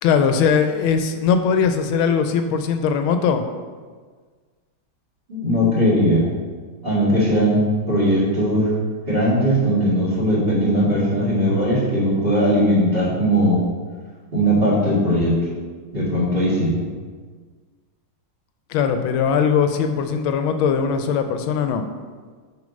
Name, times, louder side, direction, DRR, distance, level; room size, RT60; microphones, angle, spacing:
voice 1, 0.0-3.4 18.7-21.8, left 6 dB, 80° left, 7 dB, 1.4 m, -20 dB
voice 2, 5.3-6.2 6.8-8.7 9.1-13.6 14.3-15.4 15.9-16.7, equal, 25° right, -8 dB, 2.3 m, -19 dB
6.2 x 5.1 x 5.2 m, 1.5 s
omnidirectional pair, 2.2 m